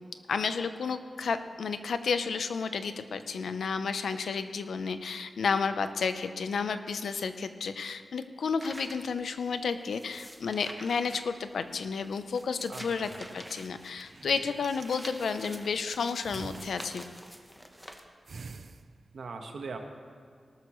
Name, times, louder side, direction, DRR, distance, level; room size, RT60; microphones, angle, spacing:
voice 1, 0.3-17.0, left 5 dB, 90° left, 10 dB, 0.7 m, -31 dB
sound 1, 8.6-18.0, equal, ahead, 1.0 m, -48 dB
voice 2, 12.7-13.4 19.1-19.8, right 4 dB, 80° right, 4 dB, 1.3 m, -41 dB
sound 2, 13.7-15.9 16.2-17.3 17.6-18.0 18.3-19.2, right 4 dB, 60° right, 0.5 m, -48 dB
18.5 x 12.5 x 3.1 m, 2.2 s
wide cardioid pair, 105°, 0 cm